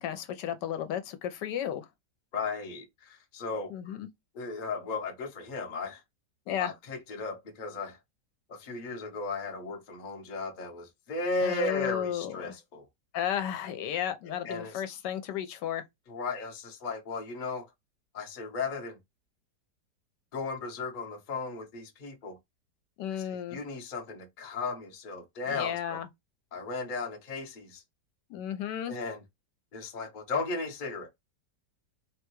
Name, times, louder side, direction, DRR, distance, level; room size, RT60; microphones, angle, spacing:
voice 1, 0.0-1.9 3.7-4.1 6.5-6.7 11.4-12.6 13.1-15.8 23.0-23.6 25.5-26.1 28.3-28.9, left 10 dB, 80° left, 1.2 m, -33 dB
voice 2, 2.3-4.0 4.3-6.0 6.6-8.0 8.5-12.9 14.4-14.8 16.1-17.7 18.1-19.0 20.3-22.4 23.1-26.0 26.5-27.8 28.9-29.2 29.7-31.1, left 3 dB, 45° left, 0.6 m, -35 dB
3.5 x 2.2 x 3.0 m
omnidirectional pair, 1.9 m